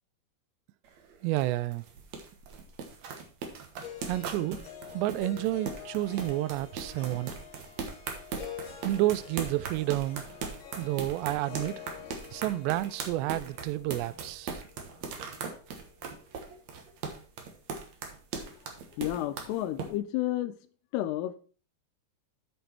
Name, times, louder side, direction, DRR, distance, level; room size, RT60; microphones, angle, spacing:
sound 1, 0.8-19.9, right 5 dB, 65° right, 1.7 m, -39 dB
voice 1, 1.2-1.8 4.1-4.6 4.9-7.3 8.8-10.2 10.8-11.9 12.3-14.6, right 16 dB, 90° right, 2.7 m, -30 dB
Harp, 3.8-15.9, left 9 dB, 60° left, 2.3 m, -47 dB
voice 2, 18.9-20.6 20.9-21.4, left 14 dB, 80° left, 2.5 m, -31 dB
8.2 x 6.7 x 4.3 m
omnidirectional pair, 4.9 m